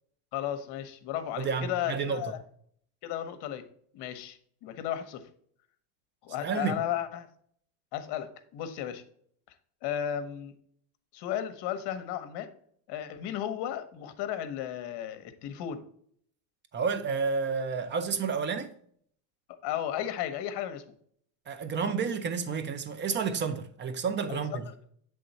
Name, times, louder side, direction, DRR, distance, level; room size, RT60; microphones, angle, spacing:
voice 1, 0.3-2.4 3.0-3.6 3.9-5.2 6.2-7.3 7.9-9.0 9.8-10.5 11.1-12.5 12.9-15.8 19.6-20.8 24.3-24.7, left 10 dB, 55° left, 0.9 m, -34 dB
voice 2, 1.4-2.2 6.4-6.8 16.7-18.7 21.5-24.7, right 5 dB, 25° right, 0.5 m, -30 dB
7.6 x 3.5 x 4.0 m
cardioid pair, 130°, 47 cm